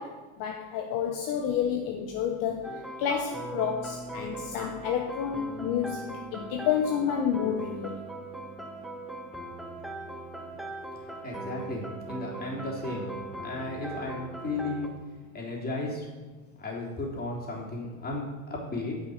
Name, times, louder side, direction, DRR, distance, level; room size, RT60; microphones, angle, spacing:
voice 1, 0.0-8.0, left 8 dB, 50° left, 3 dB, 1.1 m, -30 dB
sound 1, 2.6-14.9, right 2 dB, ahead, 1.5 m, -39 dB
voice 2, 10.9-13.1 13.4-14.9 15.3-16.1 16.6-19.0, left 2 dB, 20° left, -3 dB, 3.4 m, -34 dB
9.8 x 5.8 x 6.5 m, 1.3 s
hypercardioid pair, 95°, 43 cm